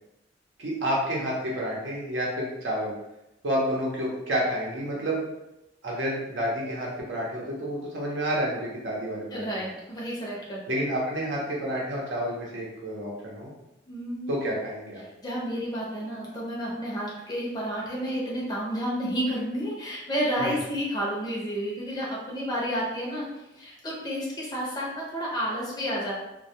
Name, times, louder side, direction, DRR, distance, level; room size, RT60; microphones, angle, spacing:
voice 1, 0.6-2.9 3.4-5.2 5.8-9.7 10.7-13.5 14.3-15.0 20.4-20.6, equal, 80° right, -4 dB, 0.7 m, -29 dB
voice 2, 9.3-10.6 13.9-14.5 15.2-26.1, equal, 20° left, -5 dB, 0.5 m, -31 dB
2.2 x 2.1 x 2.7 m, 0.92 s
head